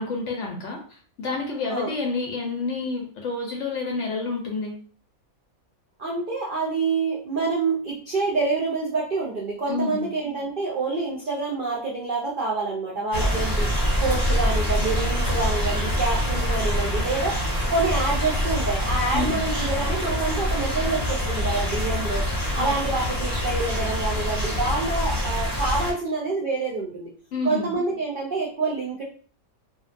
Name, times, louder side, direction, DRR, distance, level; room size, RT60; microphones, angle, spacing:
voice 1, 0.0-4.8 9.7-10.1 19.1-19.4 22.6-22.7 27.3-27.7, left 3 dB, 65° left, 0 dB, 0.8 m, -29 dB
voice 2, 6.0-13.7 14.0-17.3 17.7-22.2 22.5-27.1 27.4-29.0, right 3 dB, 70° right, -3 dB, 0.5 m, -27 dB
sound 1, 13.1-25.9, equal, 20° left, 0.6 m, -25 dB
2.6 x 2.1 x 2.5 m, 0.43 s
omnidirectional pair, 1.6 m